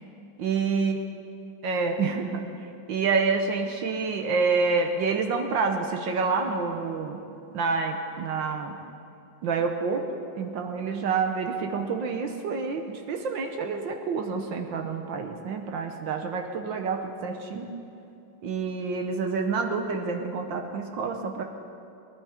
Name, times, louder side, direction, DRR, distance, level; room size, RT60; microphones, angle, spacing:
voice 1, 0.4-1.0 1.6-2.5 2.9-7.2 7.5-8.8 9.4-17.7 18.4-21.4, right 4 dB, 70° right, 4 dB, 1.6 m, -28 dB
22.0 x 11.0 x 4.4 m, 2.6 s
omnidirectional pair, 2.2 m